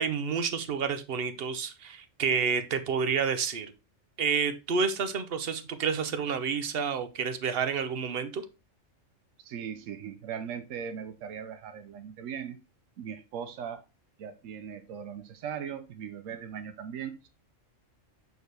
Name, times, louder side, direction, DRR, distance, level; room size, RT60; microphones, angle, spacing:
voice 1, 0.0-3.7 4.2-8.4, right 6 dB, 55° right, 10 dB, 0.9 m, -29 dB
voice 2, 9.4-12.6 13.0-13.8 14.2-17.3, right 8 dB, 85° right, 8 dB, 1.0 m, -39 dB
6.4 x 4.6 x 3.3 m, 0.28 s
omnidirectional pair, 1.3 m